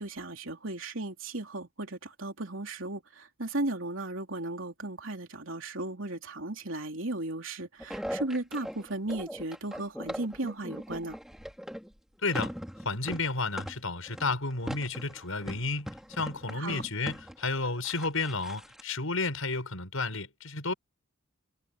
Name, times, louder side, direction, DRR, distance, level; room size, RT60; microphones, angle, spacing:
voice 1, 0.0-11.2 16.6-16.8, right 2 dB, 65° right, 3.5 m, -35 dB
sound 1, 7.8-11.9 12.3-18.8, equal, ahead, 2.2 m, -40 dB
voice 2, 12.2-12.5 12.8-15.9 16.2-20.7, left 3 dB, 80° left, 6.1 m, -32 dB
head